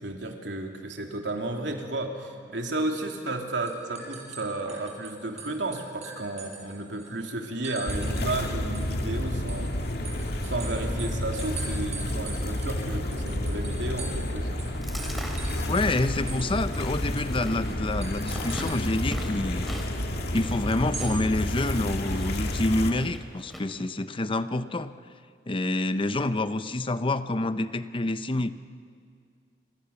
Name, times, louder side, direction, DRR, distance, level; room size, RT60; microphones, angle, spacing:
voice 1, 0.0-9.7 10.4-14.6, right 2 dB, 85° right, 2 dB, 3.1 m, -33 dB
sound 1, 3.4-3.5 3.7-5.1 5.4-7.1 7.6-8.4 8.7-14.3 14.6-14.7 15.0-16.5 16.7-16.8 17.2-17.3 18.0-18.8 20.7-21.1, right 4 dB, 40° right, 6.7 m, -41 dB
sound 2, 7.9-22.9, left 1 dB, 65° left, 2.3 m, -30 dB
Chewing mastication, 14.6-23.6, equal, ahead, 3.4 m, -42 dB
voice 2, 15.7-19.7 20.3-24.9 25.5-28.5, left 2 dB, 30° left, 12 dB, 0.7 m, -27 dB
28.5 x 25.5 x 7.1 m, 2.3 s
head